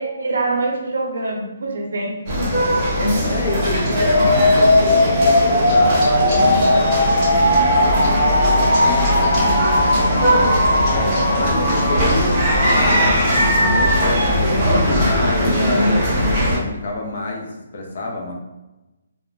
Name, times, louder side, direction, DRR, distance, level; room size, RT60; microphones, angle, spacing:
voice 1, 0.0-2.6, right 3 dB, 80° right, 0 dB, 0.5 m, -25 dB
sound 1, 2.3-16.6, equal, 15° right, 0.7 m, -19 dB
sound 2, 3.0-12.9, equal, 15° left, 0.8 m, -36 dB
voice 2, 3.2-10.5 11.3-18.3, left 2 dB, 45° left, 0 dB, 0.5 m, -29 dB
sound 3, 4.1-14.1, left 1 dB, 65° left, 1.0 m, -19 dB
2.4 x 2.1 x 3.1 m, 1.0 s
hypercardioid pair, 180°, 0 cm